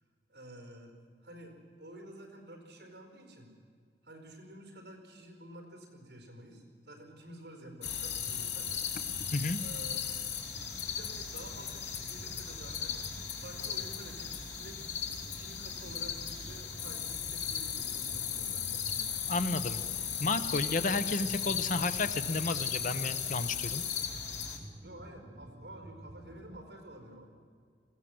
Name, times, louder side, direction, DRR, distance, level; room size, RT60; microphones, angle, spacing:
voice 1, 0.3-1.0 1.2-3.5 4.0-8.7 9.6-10.1 10.9-12.9 13.3-14.8 15.2-18.9 24.8-27.3, right 1 dB, 65° right, 3 dB, 4.6 m, -50 dB
sound 1, 7.8-24.6, left 8 dB, 80° left, 2.6 m, -36 dB
sound 2, 7.8-26.6, right 1 dB, 25° right, 0.8 m, -52 dB
voice 2, 19.3-19.8 20.2-23.8, left 3 dB, 50° left, 11 dB, 0.9 m, -32 dB
21.0 x 16.0 x 7.8 m, 2.1 s
head